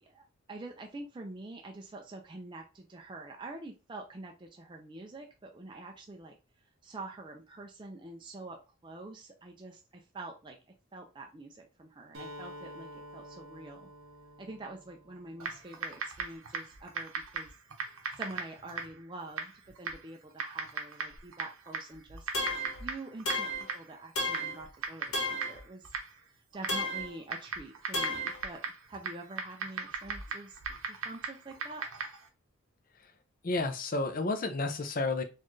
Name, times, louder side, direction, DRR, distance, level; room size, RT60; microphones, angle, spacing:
voice 1, 0.0-6.4 6.8-10.6 10.9-13.9 14.4-17.5 18.2-25.9 26.3-28.6 28.9-30.6 30.9-31.9, right 2 dB, 20° right, 2 dB, 0.4 m, -46 dB
Acoustic guitar, 12.1-16.0, equal, 45° right, 1.2 m, -49 dB
Typing, 15.4-32.3, right 5 dB, 75° right, 0.9 m, -40 dB
sound 1, 22.3-22.8 23.3-23.7 24.2-24.6 25.1-25.6 26.7-27.1 27.9-28.4, left 1 dB, 85° left, 1.4 m, -32 dB
voice 2, 33.4-35.2, left 3 dB, 40° left, 7 dB, 0.5 m, -31 dB
4.2 x 2.5 x 3.0 m, 0.30 s
head